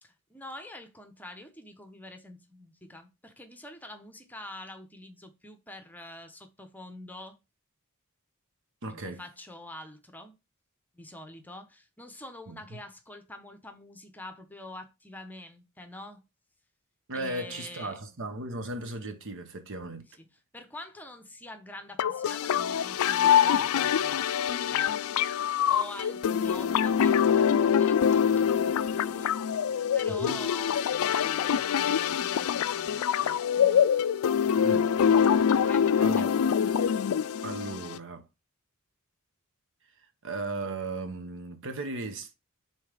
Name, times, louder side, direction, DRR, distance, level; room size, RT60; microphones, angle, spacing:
voice 1, 0.0-7.4 8.9-10.4 10.9-16.2 17.1-18.0 20.2-20.3 20.5-24.3 24.7-25.0 25.7-29.4 29.9-33.9 35.6-36.3, left 1 dB, 10° left, 0.9 m, -46 dB
voice 2, 8.8-9.2 12.5-12.8 17.1-20.0 30.1-30.4 34.6-35.0 36.0-36.3 37.4-38.3 40.2-42.3, right 2 dB, 60° right, 0.9 m, -36 dB
sound 1, 22.0-38.0, left 8 dB, 65° left, 0.4 m, -25 dB
5.5 x 3.9 x 5.0 m
head